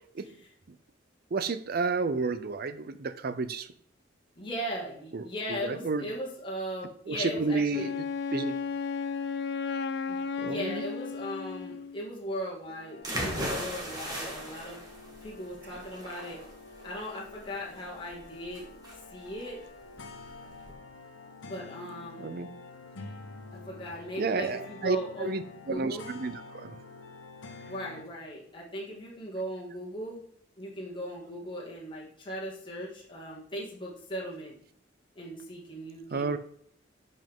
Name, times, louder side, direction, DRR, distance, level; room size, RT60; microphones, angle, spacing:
voice 1, 0.2-0.5 4.4-7.9 10.1-14.8 15.2-16.4 16.8-18.7 19.1-19.6 21.4-22.4 23.7-25.4 25.7-26.1 27.7-30.2 30.6-34.6 35.2-36.4, equal, 25° left, -5 dB, 2.1 m, -38 dB
voice 2, 1.3-3.7 5.1-5.2 5.5-6.1 7.1-8.0 8.3-8.6 10.4-10.8 22.2-22.5 24.2-26.7 36.1-36.4, right 4 dB, 55° right, 12 dB, 0.5 m, -31 dB
Wind instrument woodwind instrument, 7.7-12.1, left 5 dB, 60° left, 0.5 m, -34 dB
sound 1, 12.7-28.0, left 3 dB, 90° left, 1.1 m, -48 dB
sound 2, 13.0-20.7, equal, 20° right, 1.9 m, -38 dB
10.5 x 5.4 x 3.7 m, 0.63 s
head